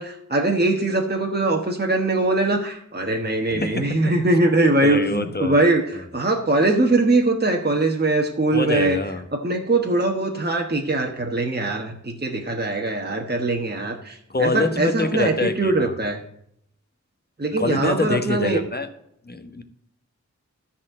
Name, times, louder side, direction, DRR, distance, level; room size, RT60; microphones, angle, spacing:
voice 1, 0.0-9.0 9.3-16.2 17.4-18.6, right 2 dB, 35° right, 2 dB, 1.2 m, -22 dB
voice 2, 4.8-5.6 8.5-9.2 14.3-15.9 17.6-18.9 19.2-19.6, left 3 dB, 35° left, 7 dB, 1.1 m, -25 dB
12.5 x 4.3 x 7.5 m, 0.70 s
wide cardioid pair, 55°, 29 cm